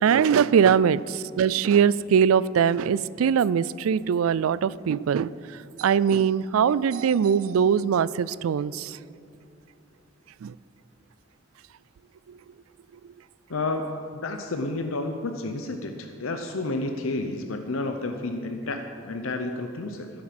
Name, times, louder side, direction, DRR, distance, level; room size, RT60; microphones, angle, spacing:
voice 1, 0.0-5.3 5.8-9.0 10.4-10.5, right 7 dB, 90° right, 19 dB, 0.3 m, -22 dB
voice 2, 13.5-20.1, left 2 dB, 85° left, 6 dB, 0.8 m, -31 dB
14.5 x 8.7 x 5.9 m, 2.5 s
head